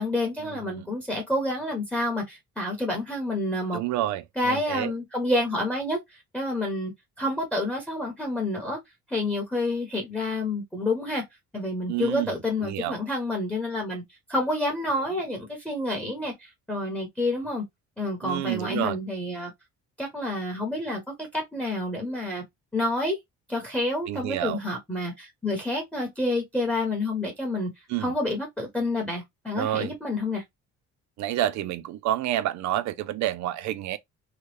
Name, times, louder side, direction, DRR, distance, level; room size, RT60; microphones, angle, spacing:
voice 1, 0.0-3.8 4.4-6.0 6.3-6.9 7.2-8.8 9.1-11.2 11.5-14.0 14.3-17.6 18.0-19.5 20.0-21.0 21.3-22.4 22.7-23.2 23.5-27.7 28.0-30.4, left 1 dB, 5° left, 0.7 m, -28 dB
voice 2, 3.7-4.9 11.9-12.3 12.6-12.9 18.2-19.0 24.1-24.6 27.9-28.1 29.6-29.9 31.2-34.0, right 13 dB, 65° right, 0.5 m, -29 dB
2.9 x 2.3 x 3.1 m
cardioid pair, 170°, 30 cm